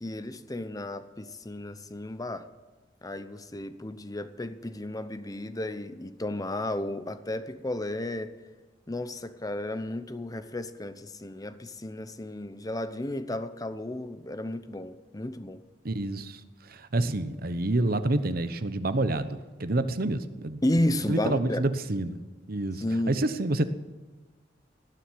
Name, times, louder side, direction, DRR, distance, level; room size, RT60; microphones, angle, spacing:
voice 1, 0.0-2.5 3.0-8.3 8.9-15.6 20.6-21.7 22.8-23.2, left 1 dB, 20° left, 11 dB, 0.8 m, -33 dB
voice 2, 15.8-22.2 22.5-23.6, right 2 dB, 55° right, 11 dB, 1.0 m, -28 dB
19.0 x 7.3 x 9.4 m, 1.3 s
head